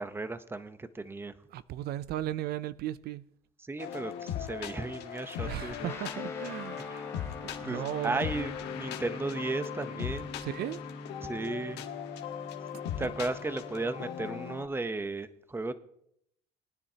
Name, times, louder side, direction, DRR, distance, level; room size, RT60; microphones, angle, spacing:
voice 1, 0.0-1.3 3.6-5.9 6.8-7.1 7.6-10.3 11.2-11.8 12.7-15.7, right 2 dB, 15° right, 0.8 m, -35 dB
voice 2, 1.5-3.2 5.5-8.2 10.4-10.8, right 13 dB, 70° right, 0.4 m, -36 dB
sound 1, 3.8-14.6, left 9 dB, 85° left, 1.4 m, -39 dB
Guitar, 5.9-14.4, left 2 dB, 15° left, 0.9 m, -45 dB
21.0 x 9.9 x 2.8 m
cardioid pair, 110°, 17 cm